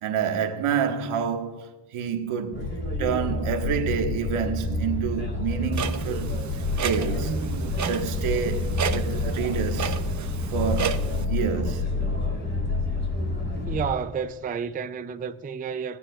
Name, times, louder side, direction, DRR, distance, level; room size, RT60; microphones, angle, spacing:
voice 1, 0.0-2.7 3.0-6.3 6.8-7.4 7.9-10.0 10.5-12.0, right 7 dB, 80° right, 1.6 m, -28 dB
sound 1, 2.5-13.9, left 2 dB, 25° left, 3.7 m, -28 dB
Clock, 5.7-11.2, right 7 dB, 35° right, 0.8 m, -32 dB
voice 2, 13.7-16.0, right 6 dB, 20° right, 0.4 m, -30 dB
17.0 x 9.8 x 2.4 m
cardioid pair, 135°, 49 cm